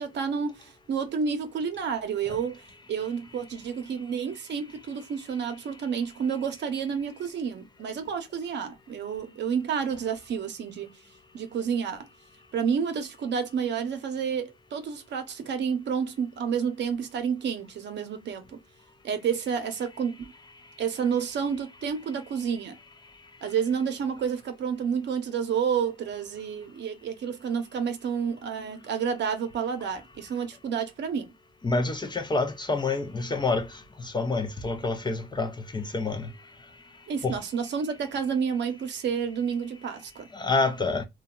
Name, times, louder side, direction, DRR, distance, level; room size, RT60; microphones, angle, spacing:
voice 1, 0.0-10.9 11.3-12.1 12.5-18.6 19.0-20.3 20.8-22.8 23.4-31.3 37.1-40.3, right 7 dB, 60° right, 0.7 m, -30 dB
voice 2, 31.6-33.7 34.1-36.3 37.2-37.3 40.3-41.0, left 3 dB, 20° left, 0.5 m, -27 dB
2.7 x 2.3 x 2.2 m
cardioid pair, 90°, 20 cm